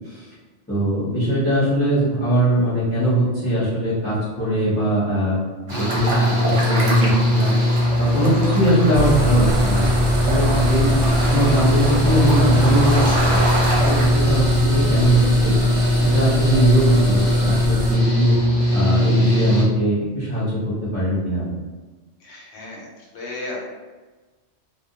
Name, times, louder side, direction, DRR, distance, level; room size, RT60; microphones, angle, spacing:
voice 1, 0.7-5.4 5.7-7.5 8.0-10.9 11.3-13.0 13.3-15.5 15.9-18.4 18.7-21.5, right 1 dB, 10° left, -12 dB, 0.8 m, -21 dB
Engine / Mechanical fan, 5.7-19.6, left 1 dB, 45° left, 0.7 m, -20 dB
sound 1, 5.7-14.1, right 1 dB, 80° right, 1.0 m, -27 dB
sound 2, 8.9-18.0, right 1 dB, 50° right, 0.4 m, -25 dB
voice 2, 22.2-22.9 23.1-23.7, left 2 dB, 75° left, -4 dB, 0.9 m, -34 dB
2.2 x 2.1 x 2.7 m, 1.3 s
omnidirectional pair, 1.2 m